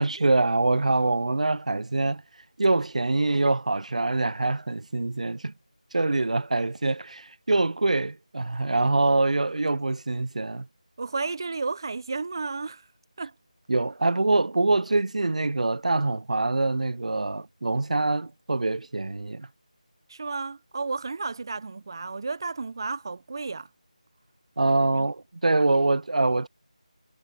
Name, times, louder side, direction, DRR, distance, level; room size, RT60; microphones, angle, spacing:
voice 1, 0.0-2.2 2.6-5.5 5.9-10.7 13.7-19.5 24.6-26.5, right 2 dB, 65° right, 0.5 m, -24 dB
voice 2, 11.0-12.9 13.2-13.3 20.1-23.7 25.0-25.1, right 4 dB, 35° right, 0.7 m, -32 dB
figure-of-eight pair, 170°, 4 cm